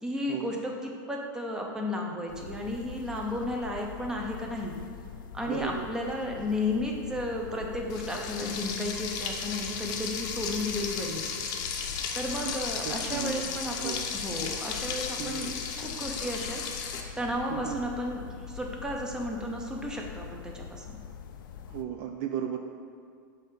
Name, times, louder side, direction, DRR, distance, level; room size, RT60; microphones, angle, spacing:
voice 1, 0.0-4.7 5.3-11.5 12.1-16.6 17.2-21.0, left 1 dB, 5° right, 0 dB, 0.7 m, -33 dB
sound 1, 2.3-21.8, left 8 dB, 85° left, 0.4 m, -44 dB
voice 2, 5.5-5.8 12.4-12.5 12.8-14.1 15.2-15.5 17.5-17.8 21.7-22.6, right 9 dB, 45° right, 4 dB, 0.4 m, -35 dB
Frying (food), 7.9-17.0, left 6 dB, 40° left, 0.7 m, -35 dB
7.1 x 2.8 x 5.9 m, 2.2 s
supercardioid pair, 140°, 11 cm